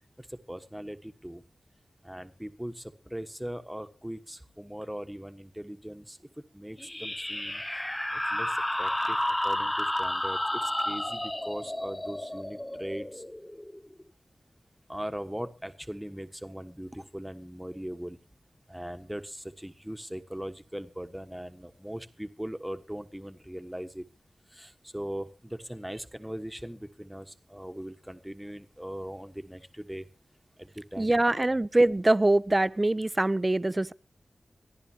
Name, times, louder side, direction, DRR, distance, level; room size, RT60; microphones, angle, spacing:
voice 1, 0.2-1.4 2.0-6.2 6.5-7.6 8.2-8.5 8.8-9.2 9.4-13.2 14.9-18.2 18.7-24.0 24.5-30.1 30.6-31.1, equal, 5° right, 1.3 m, -40 dB
sound 1, 6.8-14.0, left 1 dB, 15° left, 0.6 m, -31 dB
voice 2, 31.0-33.9, right 2 dB, 30° right, 0.6 m, -24 dB
26.0 x 10.5 x 2.9 m
cardioid pair, 45°, 0 cm